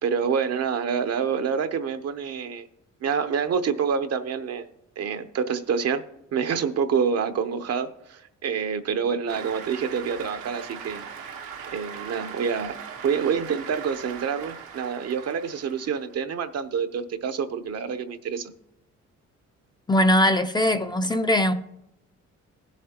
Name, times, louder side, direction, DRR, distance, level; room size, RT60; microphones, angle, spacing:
voice 1, 0.0-2.7 3.0-4.7 5.0-6.0 6.3-11.1 11.7-12.8 13.0-18.5, right 6 dB, 55° right, 0.8 m, -27 dB
Cheering / Applause, 9.3-16.1, right 7 dB, 90° right, 1.3 m, -40 dB
voice 2, 19.9-21.5, left 1 dB, 15° left, 0.6 m, -21 dB
16.5 x 7.4 x 2.9 m
cardioid pair, 90°, 30 cm